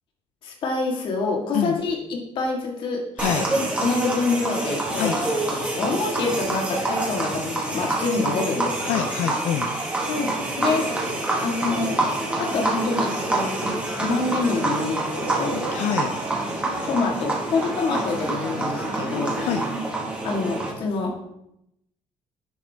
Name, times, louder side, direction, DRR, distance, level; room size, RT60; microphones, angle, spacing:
voice 1, 0.4-3.0 3.8-5.2 5.7-9.1 10.1-11.1 11.4-12.0 12.4-15.6 16.8-19.5 20.2-21.2, left 3 dB, 50° left, 1 dB, 1.9 m, -26 dB
sound 1, 3.2-20.7, right 2 dB, 10° right, 1.6 m, -27 dB
voice 2, 5.0-5.3 8.9-9.7 15.5-16.1 19.3-19.6, left 9 dB, 85° left, 7 dB, 0.6 m, -26 dB
10.5 x 6.4 x 3.5 m, 0.80 s
cardioid pair, 175°, 11 cm